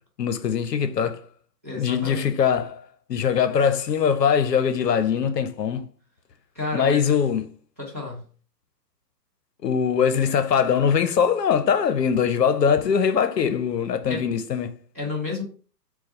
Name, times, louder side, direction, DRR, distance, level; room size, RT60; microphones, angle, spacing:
voice 1, 0.2-1.2 1.7-2.8 3.1-5.9 6.7-7.5 9.6-14.8, left 7 dB, 75° left, 0.8 m, -22 dB
voice 2, 1.6-2.3 6.5-7.2 7.8-8.2 14.0-14.2 14.9-15.4, left 3 dB, 10° right, 0.4 m, -31 dB
4.1 x 2.3 x 4.3 m
hypercardioid pair, 135°, 49 cm